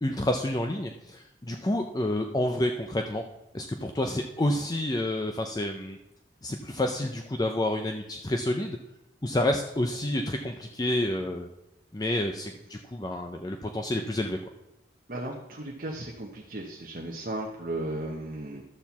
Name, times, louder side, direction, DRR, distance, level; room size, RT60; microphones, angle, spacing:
voice 1, 0.0-3.2 3.5-6.0 6.4-8.8 9.2-11.5 11.9-14.4, left 1 dB, 20° left, 4 dB, 0.5 m, -29 dB
voice 2, 15.1-18.6, right 1 dB, 50° right, -1 dB, 1.0 m, -35 dB
12.0 x 4.5 x 7.0 m, 0.90 s
head